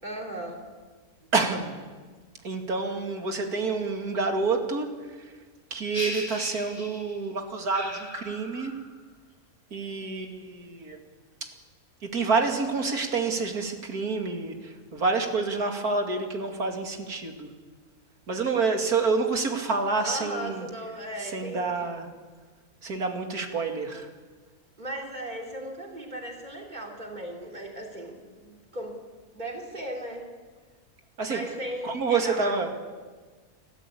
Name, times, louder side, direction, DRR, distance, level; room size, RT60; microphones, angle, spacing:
voice 1, 0.0-0.7 20.0-21.9 24.8-29.0 29.3-30.3 31.2-32.7, right 1 dB, 30° right, 1 dB, 4.0 m, -37 dB
voice 2, 1.3-1.8 2.4-5.3 5.7-8.7 9.7-11.0 12.0-17.5 18.3-20.7 21.2-22.1 22.8-24.1 31.2-31.4 31.8-32.7, right 4 dB, 90° right, 4 dB, 2.9 m, -28 dB
sound 1, 5.9-7.3 7.7-9.0, left 1 dB, 15° left, 2.1 m, -37 dB
29.5 x 13.5 x 8.6 m, 1.4 s
omnidirectional pair, 1.5 m